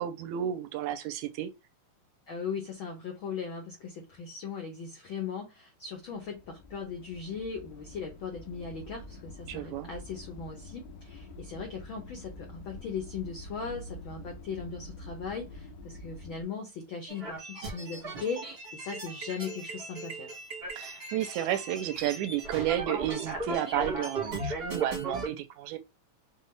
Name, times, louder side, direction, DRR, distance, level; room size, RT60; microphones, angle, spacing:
voice 1, 0.0-1.5 9.5-9.9 20.7-25.8, right 11 dB, 80° right, 1.8 m, -32 dB
voice 2, 2.3-20.3, left 5 dB, 90° left, 1.1 m, -38 dB
sound 1, 6.0-16.4, left 1 dB, 70° left, 1.9 m, -46 dB
sound 2, 17.1-25.3, right 3 dB, 40° right, 0.8 m, -37 dB
5.6 x 2.4 x 3.2 m
omnidirectional pair, 3.6 m